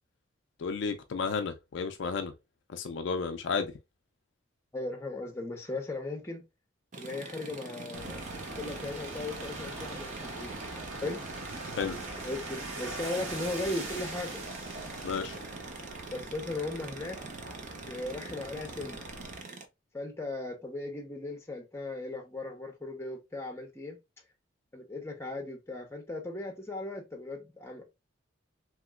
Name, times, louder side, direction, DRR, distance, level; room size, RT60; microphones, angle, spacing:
voice 1, 0.6-2.3 2.7-3.7 11.8-12.0 15.0-15.4, left 5 dB, 60° left, 0.3 m, -32 dB
voice 2, 4.7-6.4 7.0-8.2 8.6-10.8 11.0-11.2 12.2-14.4 16.1-17.2 17.8-19.1 19.9-24.0 24.7-27.8, left 2 dB, 15° left, 0.7 m, -37 dB
sound 1, 6.9-19.6, right 3 dB, 40° right, 0.4 m, -44 dB
sound 2, 7.9-19.4, right 2 dB, 80° right, 1.1 m, -42 dB
3.0 x 2.9 x 2.3 m
head